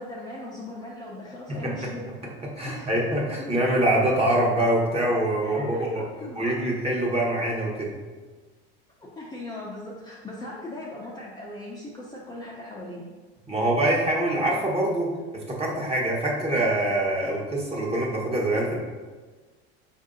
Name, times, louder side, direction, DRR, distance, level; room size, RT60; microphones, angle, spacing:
voice 1, 0.0-2.1 2.7-2.9 3.4-3.7 5.4-6.6 9.0-13.1, left 1 dB, 15° left, -5 dB, 0.7 m, -39 dB
voice 2, 2.6-6.0 6.3-7.9 13.5-15.1 15.5-18.8, right 1 dB, 20° right, -3 dB, 1.1 m, -24 dB
4.6 x 2.7 x 3.8 m, 1.4 s
supercardioid pair, 100°, 31 cm